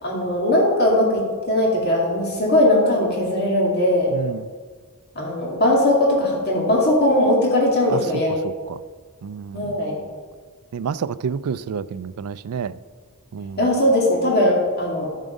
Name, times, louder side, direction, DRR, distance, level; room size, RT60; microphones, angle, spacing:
voice 1, 0.0-4.1 5.2-8.4 9.5-10.0 13.6-15.1, left 1 dB, 45° left, -2 dB, 2.3 m, -19 dB
voice 2, 4.1-4.5 7.9-8.0 8.4-8.8 9.2-9.8 10.7-12.8 13.3-13.6, right 6 dB, 80° right, 16 dB, 0.4 m, -29 dB
12.0 x 7.4 x 5.2 m, 1.5 s
head